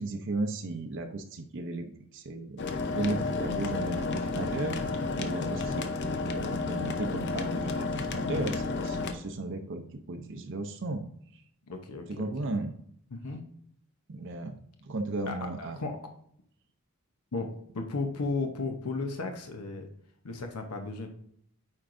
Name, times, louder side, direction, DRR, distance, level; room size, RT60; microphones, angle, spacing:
voice 1, 0.0-2.6 2.9-5.9 6.2-11.1 11.3-11.4 12.1-12.7 14.1-15.8, right 2 dB, 55° right, 6 dB, 0.6 m, -35 dB
sound 1, 2.6-9.1, left 3 dB, 50° left, 0.6 m, -31 dB
voice 2, 11.7-12.5 13.1-13.4 15.3-16.0 17.3-19.9 20.2-21.1, left 3 dB, 85° left, 5 dB, 0.8 m, -35 dB
8.6 x 4.6 x 2.5 m, 0.66 s
head